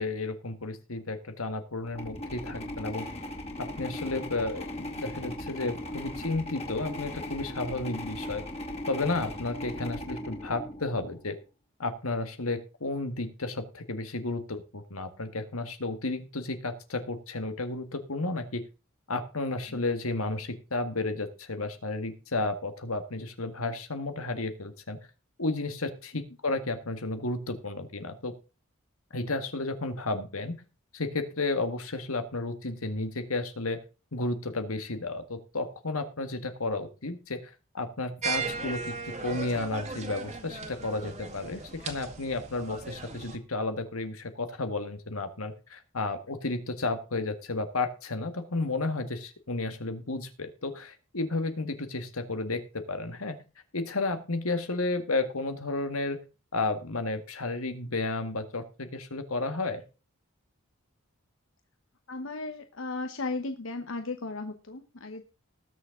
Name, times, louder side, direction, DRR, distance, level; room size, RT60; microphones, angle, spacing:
voice 1, 0.0-3.1 3.6-8.4 8.9-11.4 11.8-18.6 19.1-25.0 25.4-28.3 29.1-30.6 30.9-33.8 34.1-53.4 53.7-56.2 56.5-59.8, left 2 dB, 85° left, 8 dB, 1.9 m, -32 dB
sound 1, 1.8-11.2, left 1 dB, 30° left, 2.6 m, -38 dB
sound 2, 38.2-43.4, right 4 dB, 35° right, 1.9 m, -37 dB
voice 2, 62.1-65.2, left 3 dB, 65° left, 7 dB, 1.0 m, -35 dB
19.5 x 6.8 x 3.8 m, 0.32 s
head